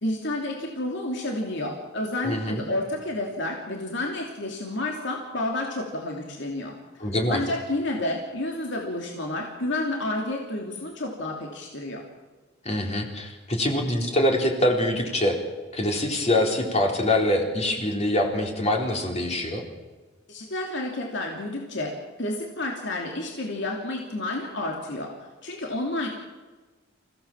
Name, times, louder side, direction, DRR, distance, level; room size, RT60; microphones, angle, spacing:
voice 1, 0.0-12.0 20.3-26.1, left 1 dB, 65° left, 1 dB, 3.0 m, -30 dB
voice 2, 2.2-2.7 7.0-7.4 12.6-15.4 15.7-19.6, left 1 dB, 35° left, 1 dB, 4.0 m, -24 dB
28.0 x 16.5 x 7.4 m, 1.3 s
head